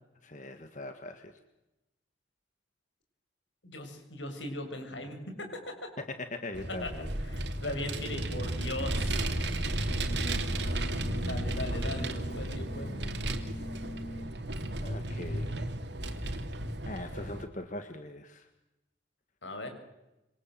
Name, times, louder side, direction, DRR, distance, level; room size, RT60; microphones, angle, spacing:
voice 1, 0.2-1.4 6.0-7.1 14.8-15.6 16.9-18.5, left 2 dB, 40° left, 7 dB, 1.9 m, -41 dB
voice 2, 3.6-5.8 6.8-6.9 7.2-9.3 11.2-13.0 19.4-19.7, left 1 dB, 80° left, 6 dB, 7.1 m, -39 dB
Vehicle, 6.5-17.4, right 1 dB, 70° right, 2.9 m, -33 dB
Singing, 9.6-14.4, right 1 dB, 65° left, 2.7 m, -45 dB
27.5 x 25.5 x 7.8 m, 0.96 s
head